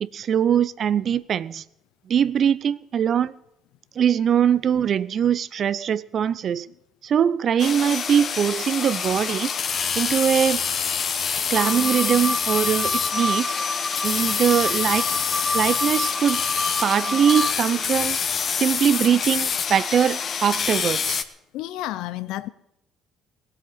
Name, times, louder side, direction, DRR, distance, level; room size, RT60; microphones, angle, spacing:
voice 1, 0.0-1.6 2.1-3.3 4.0-6.7 7.0-9.5 10.0-10.6 11.5-13.5 14.0-15.0 15.5-16.4 16.8-18.2 18.6-21.2, right 8 dB, 50° right, 0.6 m, -22 dB
sound 1, 7.6-21.2, left 6 dB, 45° left, 1.1 m, -26 dB
sound 2, 11.5-17.5, left 1 dB, 5° left, 0.7 m, -29 dB
voice 2, 21.5-22.5, left 15 dB, 75° left, 0.7 m, -32 dB
17.0 x 8.0 x 8.7 m
supercardioid pair, 70°, 0 cm